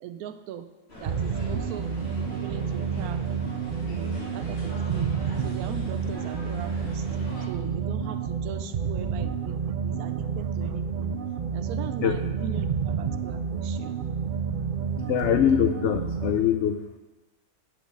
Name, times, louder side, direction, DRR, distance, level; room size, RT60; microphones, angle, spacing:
voice 1, 0.0-3.4 3.8-5.1 5.4-7.1 7.4-11.2 11.5-14.1, right 9 dB, 80° right, 10 dB, 1.1 m, -40 dB
sound 1, 0.9-7.4, left 2 dB, 45° left, 2.7 m, -42 dB
sound 2, 1.1-16.4, right 6 dB, 60° right, 0.5 m, -29 dB
voice 2, 15.1-16.8, left 9 dB, 65° left, 9 dB, 0.7 m, -23 dB
8.3 x 6.2 x 8.0 m, 1.2 s
omnidirectional pair, 1.5 m